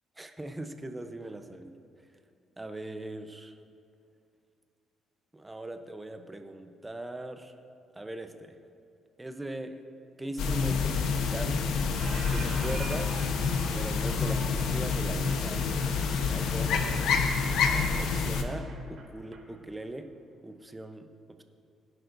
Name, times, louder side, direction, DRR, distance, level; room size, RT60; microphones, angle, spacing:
voice 1, 0.2-1.8 2.6-3.6 5.3-7.5 8.0-8.6 9.2-9.8 10.2-11.6 12.3-13.3 13.7-15.7 16.3-17.1 18.0-20.1 20.4-21.4, right 1 dB, 15° right, 7 dB, 0.8 m, -40 dB
sound 1, 10.4-18.4, left 5 dB, 80° left, 1.0 m, -28 dB
Squeak, 11.0-11.5 11.8-19.4, right 4 dB, 60° right, 2.6 m, -47 dB
20.0 x 10.5 x 2.7 m, 2.5 s
cardioid pair, 105°, 0 cm